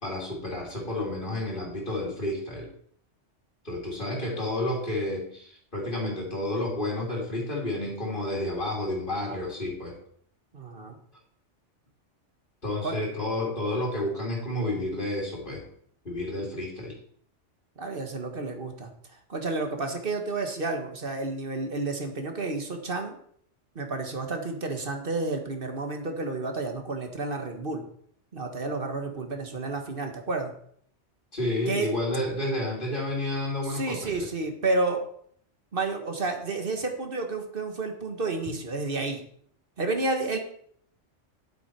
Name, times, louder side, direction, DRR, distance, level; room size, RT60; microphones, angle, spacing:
voice 1, 0.0-2.7 3.6-10.0 12.6-15.6 16.0-17.0 31.3-34.3, left 1 dB, 45° left, -3 dB, 2.9 m, -30 dB
voice 2, 10.5-11.0 12.8-12.9 17.8-23.2 23.7-27.8 28.3-30.5 31.7-31.9 33.6-35.0 35.7-39.2 39.8-40.4, right 3 dB, 50° right, 4 dB, 1.6 m, -30 dB
10.5 x 8.0 x 4.7 m, 0.63 s
omnidirectional pair, 1.2 m